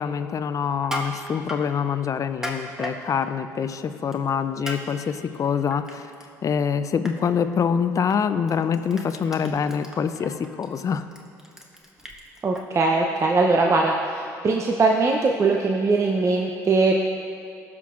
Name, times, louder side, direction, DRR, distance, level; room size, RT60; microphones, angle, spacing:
voice 1, 0.0-6.1 6.4-11.0, left 7 dB, 40° left, 11 dB, 0.5 m, -25 dB
Crushing, 0.7-1.6 2.2-3.0 4.1-4.3 4.7-4.8 5.2-6.3 6.6-6.8 7.1-7.2 8.1-8.2 8.5-12.6, equal, 5° right, 1.3 m, -35 dB
voice 2, 12.4-17.0, right 3 dB, 35° right, 1 dB, 0.7 m, -21 dB
18.0 x 6.0 x 2.5 m, 2.6 s
hypercardioid pair, 60°, 8 cm